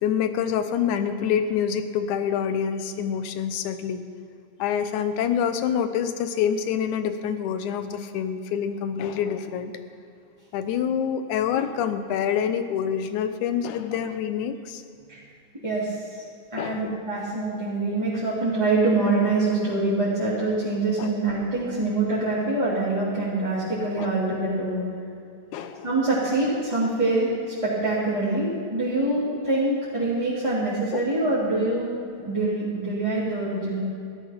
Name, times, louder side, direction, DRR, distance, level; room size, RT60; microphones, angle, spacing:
voice 1, 0.0-4.0 4.6-9.7 10.5-14.8 16.6-17.0 21.0-21.1 24.0-24.1 25.5-25.9 30.9-31.0, left 8 dB, 85° left, 9 dB, 2.3 m, -26 dB
voice 2, 15.6-16.0 16.5-24.8 25.8-33.8, right 2 dB, 10° right, -12 dB, 2.8 m, -25 dB
15.0 x 12.5 x 5.9 m, 2.5 s
omnidirectional pair, 3.4 m